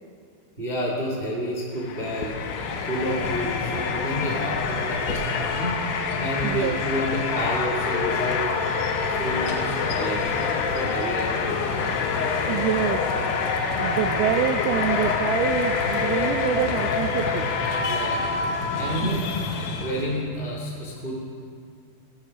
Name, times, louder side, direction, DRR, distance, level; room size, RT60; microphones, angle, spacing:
voice 1, 0.6-2.3 2.8-5.8 6.2-8.4 9.1-11.7 17.8-18.2 18.7-19.3 19.8-21.1, equal, 70° right, -2 dB, 0.5 m, -30 dB
sound 1, 1.7-20.2, left 5 dB, 70° left, 2.4 m, -26 dB
voice 2, 6.4-6.8 12.5-13.0 13.8-17.5 19.0-19.1, right 11 dB, 90° right, 9 dB, 2.2 m, -26 dB
17.5 x 9.8 x 6.2 m, 2.3 s
omnidirectional pair, 5.0 m